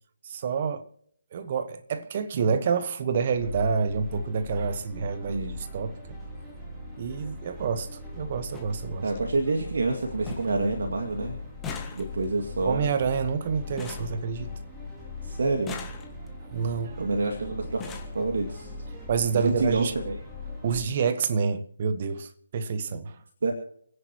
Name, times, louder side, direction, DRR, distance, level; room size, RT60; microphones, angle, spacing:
voice 1, 0.2-0.9 1.3-6.2 7.0-7.9 8.2-9.1 12.6-14.5 16.5-17.0 19.1-19.9 20.6-23.2, right 6 dB, 40° right, 1.4 m, -28 dB
sound 1, 3.2-20.8, left 3 dB, 10° right, 3.5 m, -40 dB
voice 2, 5.3-5.6 9.0-11.4 11.9-12.9 15.2-15.8 17.0-17.9 18.1-18.7 19.3-20.2 23.4-23.5, right 3 dB, 70° right, 2.3 m, -27 dB
sound 2, 6.5-6.6 7.8-7.9 8.2-8.3 8.5-8.7 9.2-9.7 9.9-10.0 10.3-10.6 10.9-14.9 15.5-16.4 17.2-17.3 17.6-18.2 19.2-19.3 19.6-19.8 20.1-20.2, left 4 dB, 10° left, 1.8 m, -42 dB
29.5 x 10.5 x 3.1 m
figure-of-eight pair, 155°, 0 cm